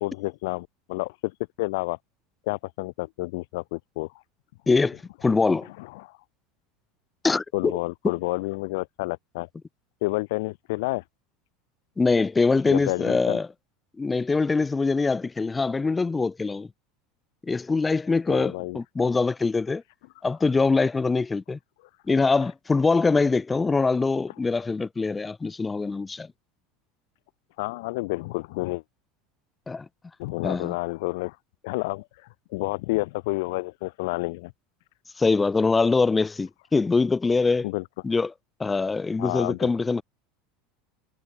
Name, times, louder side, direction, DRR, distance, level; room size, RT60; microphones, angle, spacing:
voice 1, 0.0-2.0 2.5-4.2 5.6-6.2 7.5-9.5 10.0-11.0 12.7-13.4 18.3-18.8 27.6-28.8 30.2-31.4 31.6-34.5 37.6-37.8 39.2-39.7, left 23 dB, 65° left, 0.6 m, -30 dB
voice 2, 4.7-5.7 7.2-7.7 12.0-13.5 14.0-16.7 17.5-19.8 20.2-21.6 22.1-26.3 29.7-29.9 30.4-30.7 35.2-37.7 38.0-38.3 38.6-40.0, left 4 dB, 15° left, 2.3 m, -23 dB
hypercardioid pair, 80°, 0 cm